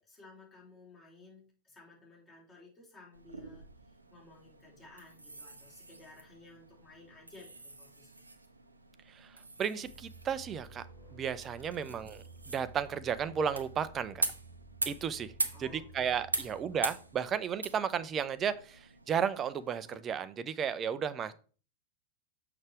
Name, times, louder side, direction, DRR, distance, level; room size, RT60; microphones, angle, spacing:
voice 1, 0.2-3.6 4.1-8.2 11.7-12.0 15.5-16.1, left 2 dB, 25° left, -3 dB, 3.6 m, -56 dB
sound 1, 3.1-20.0, right 2 dB, 85° right, 0.7 m, -42 dB
voice 2, 9.1-10.8 11.1-14.2 14.9-15.3 15.6-21.3, right 7 dB, 25° right, 14 dB, 0.5 m, -34 dB
sound 2, 9.8-17.2, right 3 dB, 70° left, 3.6 m, -53 dB
6.5 x 5.9 x 3.4 m, 0.38 s
figure-of-eight pair, 90°, 0 cm